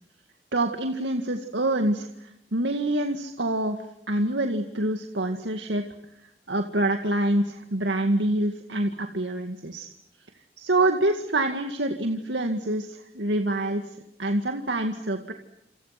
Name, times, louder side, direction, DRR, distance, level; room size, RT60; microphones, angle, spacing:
voice 1, 0.5-5.8 6.5-9.9 10.6-15.3, right 1 dB, 80° right, 5 dB, 2.1 m, -26 dB
29.0 x 28.5 x 6.0 m, 0.82 s
head